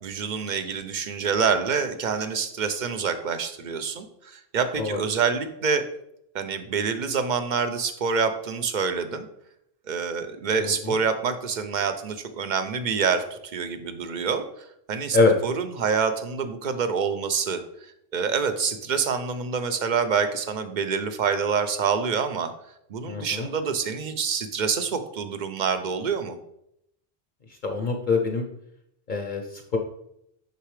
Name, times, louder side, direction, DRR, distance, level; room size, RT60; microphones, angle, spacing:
voice 1, 0.0-5.8 6.3-9.2 9.9-14.4 14.9-15.2 15.4-17.6 18.1-22.5 22.9-26.4, right 6 dB, 50° right, 9 dB, 0.7 m, -26 dB
voice 2, 10.6-11.0 15.1-15.4 23.0-23.5 27.5-28.4 29.1-29.8, left 3 dB, 55° left, 3 dB, 0.7 m, -24 dB
6.7 x 5.6 x 3.2 m, 0.78 s
omnidirectional pair, 1.1 m